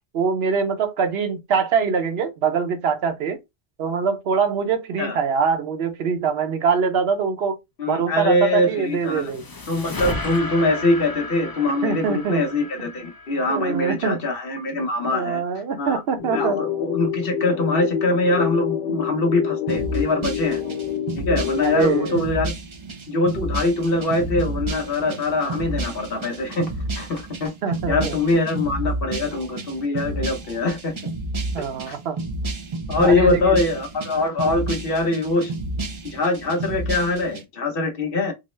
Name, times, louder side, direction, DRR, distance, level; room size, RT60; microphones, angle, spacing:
voice 1, 0.1-3.4 3.8-7.6 7.9-9.4 11.8-12.4 13.5-14.2 15.1-16.6 21.6-22.3 27.6-28.4 31.5-32.2 33.0-33.6, right 6 dB, 70° right, 0.8 m, -23 dB
voice 2, 7.8-9.3 9.7-15.4 15.8-16.0 16.3-20.6 21.2-22.5 23.1-27.5 27.9-30.9 31.9-32.0 32.9-35.5 36.0-38.3, left 2 dB, 60° left, 0.9 m, -23 dB
sound 1, 8.7-14.1, left 2 dB, 30° left, 0.5 m, -34 dB
sound 2, 16.2-22.2, left 8 dB, 85° left, 1.2 m, -27 dB
sound 3, 19.7-37.4, right 2 dB, 40° right, 0.4 m, -31 dB
3.7 x 2.0 x 3.1 m
omnidirectional pair, 1.1 m